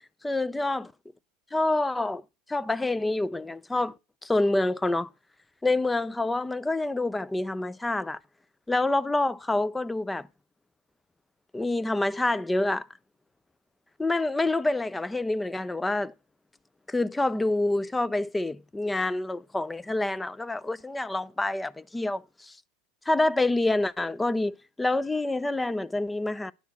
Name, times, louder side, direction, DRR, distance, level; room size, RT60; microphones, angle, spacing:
voice 1, 0.2-0.9 1.5-2.2 2.5-4.0 4.2-5.1 5.6-8.2 8.7-10.3 11.5-12.9 14.0-16.1 16.9-22.5 23.1-26.5, left 2 dB, 10° left, 0.4 m, -27 dB
10.0 x 4.2 x 6.9 m
supercardioid pair, 130°, 0 cm